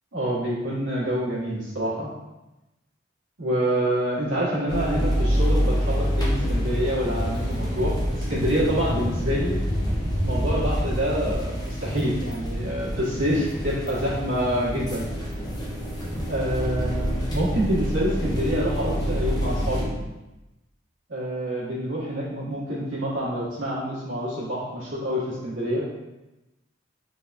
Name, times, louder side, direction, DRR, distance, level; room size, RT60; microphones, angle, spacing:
voice 1, 0.1-2.1 3.4-9.6 10.2-15.1 16.3-20.0 21.1-25.9, equal, 70° right, -6 dB, 1.2 m, -27 dB
sound 1, 4.7-19.8, equal, 20° left, 0.6 m, -27 dB
3.4 x 3.3 x 2.5 m, 1.0 s
head